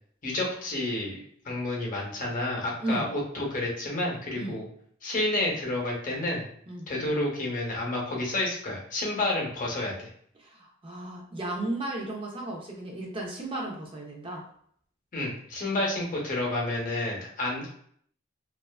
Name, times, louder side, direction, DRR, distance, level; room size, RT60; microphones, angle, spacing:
voice 1, 0.2-4.6 5.0-6.5 6.9-10.1 15.1-17.7, left 2 dB, 45° left, -2 dB, 0.7 m, -30 dB
voice 2, 2.8-3.1 4.4-4.6 6.7-6.9 10.4-14.4, right 1 dB, 30° right, -1 dB, 0.5 m, -34 dB
2.4 x 2.3 x 2.3 m, 0.63 s
head